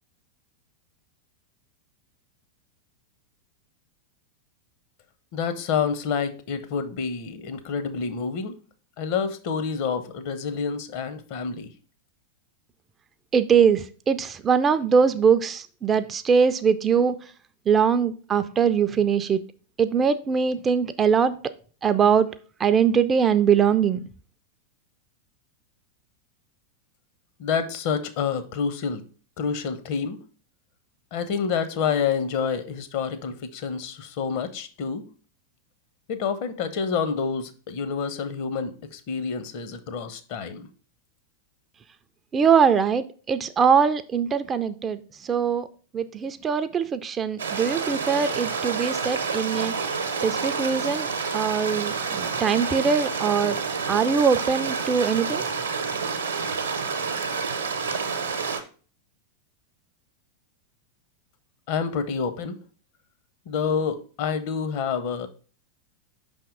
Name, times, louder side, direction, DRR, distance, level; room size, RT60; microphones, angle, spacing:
voice 1, 5.3-8.6 9.0-11.7 27.4-29.0 29.4-30.2 31.1-35.0 36.1-40.7 61.7-62.6 63.5-65.3, left 6 dB, 45° left, 10 dB, 0.7 m, -28 dB
voice 2, 13.3-17.2 17.7-19.4 19.8-21.4 21.8-22.3 22.6-24.0 42.3-45.7 45.9-49.7 50.2-53.6 53.9-55.4, right 6 dB, 20° right, 11 dB, 0.3 m, -22 dB
Stream, 47.4-58.6, right 5 dB, 70° right, 0.8 m, -28 dB
5.7 x 3.5 x 5.1 m, 0.39 s
figure-of-eight pair, 90°, 0 cm